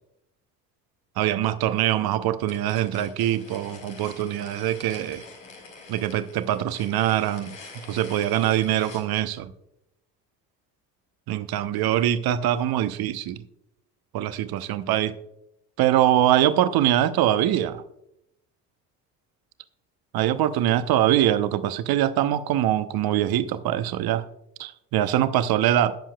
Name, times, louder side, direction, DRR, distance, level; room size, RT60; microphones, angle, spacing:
voice 1, 1.2-5.2 5.9-7.6 7.9-9.5 11.3-13.4 14.1-15.2 15.8-17.8 20.1-24.2 24.6-26.0, right 12 dB, 50° right, 0.9 m, -23 dB
sound 1, 2.4-9.1, left 4 dB, 90° left, 2.2 m, -45 dB
19.5 x 7.3 x 2.3 m
hypercardioid pair, 60°, 47 cm